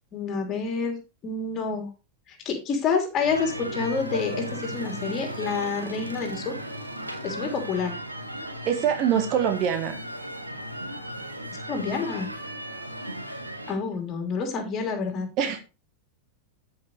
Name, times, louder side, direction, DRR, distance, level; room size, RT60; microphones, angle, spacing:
voice 1, 0.1-1.0 1.2-1.9 2.3-6.5 7.2-7.9 11.7-12.3 13.7-15.3, left 5 dB, 30° left, 3.3 m, -28 dB
sound 1, 3.2-13.7, right 1 dB, 85° right, 1.8 m, -36 dB
voice 2, 8.6-10.0 15.4-15.6, right 8 dB, 40° right, 1.5 m, -24 dB
13.5 x 5.6 x 3.3 m
figure-of-eight pair, 90°, 0 cm